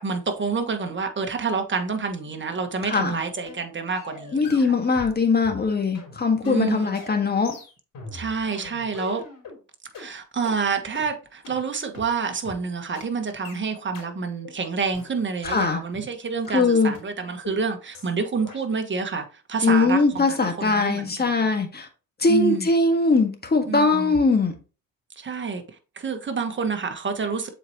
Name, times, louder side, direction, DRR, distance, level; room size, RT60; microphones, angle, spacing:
voice 1, 0.0-4.7 6.4-7.0 8.1-9.2 10.0-21.5 22.3-22.7 23.7-24.2 25.2-25.6 25.9-27.5, right 5 dB, 30° right, 1.5 m, -28 dB
sound 1, 2.9-3.1 3.5-3.7 3.9-5.2 5.4-9.6 9.9-10.1 10.4-10.6 10.9-11.1 11.4-11.6 11.9-12.1 12.4-12.6 12.9-13.1 13.4-13.6 13.9-14.1 14.4-14.6 14.9-16.1 16.4-16.5 16.9-17.0 17.4-17.6 17.9-18.1 18.4-18.6, left 3 dB, 65° left, 2.9 m, -41 dB
voice 2, 2.9-3.2 4.3-7.6 15.4-15.8 16.5-16.9 19.6-21.9 22.2-24.6, left 3 dB, 25° left, 1.6 m, -21 dB
7.3 x 4.6 x 2.9 m
supercardioid pair, 75°, 37 cm